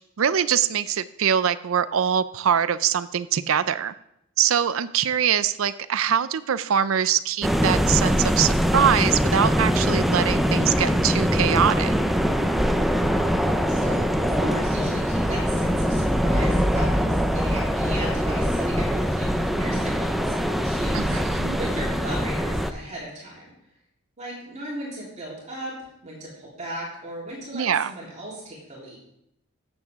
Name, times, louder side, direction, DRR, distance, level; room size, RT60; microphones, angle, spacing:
voice 1, 0.2-3.9 4.4-11.9 20.9-21.6 27.5-27.9, right 8 dB, 85° right, 15 dB, 0.5 m, -23 dB
sound 1, 7.4-22.7, equal, ahead, 0.5 m, -23 dB
voice 2, 13.7-23.5 24.2-25.7 26.0-29.0, right 1 dB, 35° right, -6 dB, 3.5 m, -36 dB
13.5 x 7.9 x 3.6 m, 0.80 s
head